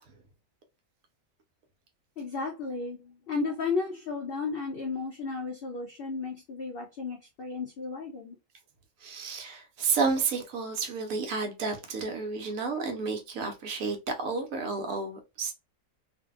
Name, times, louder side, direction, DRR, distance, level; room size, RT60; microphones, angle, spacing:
voice 1, 2.2-8.4, left 4 dB, 75° left, 0.5 m, -34 dB
voice 2, 9.0-15.5, right 4 dB, 65° right, 1.0 m, -31 dB
2.6 x 2.6 x 2.3 m
omnidirectional pair, 1.6 m